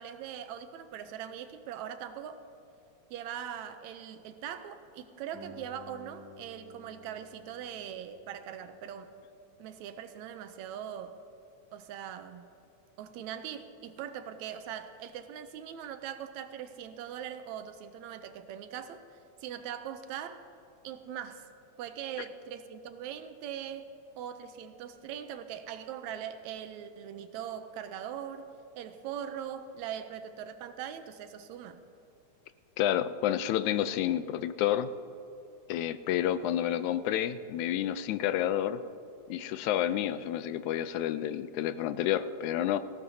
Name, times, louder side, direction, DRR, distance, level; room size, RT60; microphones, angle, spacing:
voice 1, 0.0-2.4 3.1-9.1 9.6-11.2 11.7-12.5 13.0-20.4 20.8-21.4 21.8-23.9 24.2-28.5 28.8-31.8, right 9 dB, 80° right, 9 dB, 1.9 m, -41 dB
Guitar, 5.3-10.7, left 1 dB, 40° right, 3.4 m, -55 dB
voice 2, 32.8-34.9 35.7-38.8 39.3-42.8, left 11 dB, 85° left, 13 dB, 1.9 m, -29 dB
18.5 x 15.5 x 2.8 m, 2.9 s
omnidirectional pair, 3.4 m